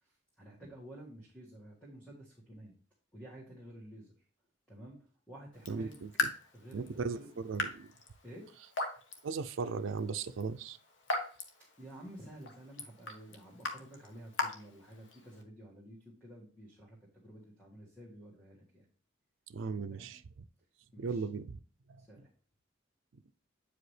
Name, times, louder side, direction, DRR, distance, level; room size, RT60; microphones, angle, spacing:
voice 1, 0.0-2.7 3.1-4.1 4.7-5.0 5.3-6.0 6.5-7.3 8.2-8.5 11.8-18.9 19.9-20.1 20.9-21.2 22.0-22.3, right 1 dB, 10° left, 1.6 m, -51 dB
Raindrop / Drip, 5.5-15.4, left 3 dB, 70° left, 1.1 m, -41 dB
voice 2, 5.7-6.1 6.7-7.2 7.4-7.9 9.2-10.8 19.5-20.2 21.0-21.6, right 5 dB, 80° right, 0.4 m, -37 dB
8.5 x 4.9 x 3.2 m
head